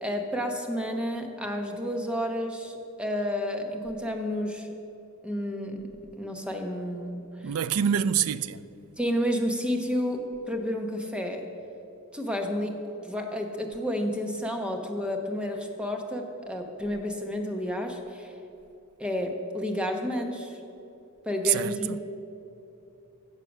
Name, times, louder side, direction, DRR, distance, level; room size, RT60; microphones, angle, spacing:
voice 1, 0.0-4.7 5.2-5.9 6.2-7.2 9.0-10.2 10.4-11.4 12.1-12.7 13.0-18.3 19.0-19.3 19.5-20.6 21.2-22.0, equal, 5° right, 1.1 m, -30 dB
voice 2, 7.4-8.6 21.4-22.0, right 8 dB, 75° right, 0.4 m, -26 dB
15.5 x 6.8 x 6.1 m
head